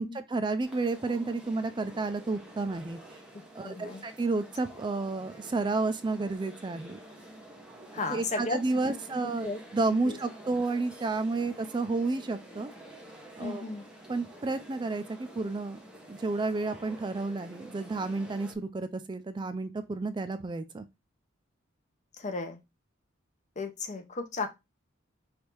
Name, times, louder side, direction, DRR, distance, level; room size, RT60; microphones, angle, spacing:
voice 1, 0.0-3.0 3.6-7.0 8.1-12.7 13.4-13.6 14.1-15.8 16.1-20.9, right 3 dB, 25° right, 0.3 m, -31 dB
sound 1, 0.6-18.6, right 1 dB, 5° right, 0.8 m, -49 dB
voice 2, 3.6-4.0 7.9-8.6 9.2-9.6 9.9-10.2 13.4-13.8 22.2-22.6 23.6-24.5, left 3 dB, 35° left, 0.7 m, -34 dB
3.4 x 2.7 x 4.4 m
head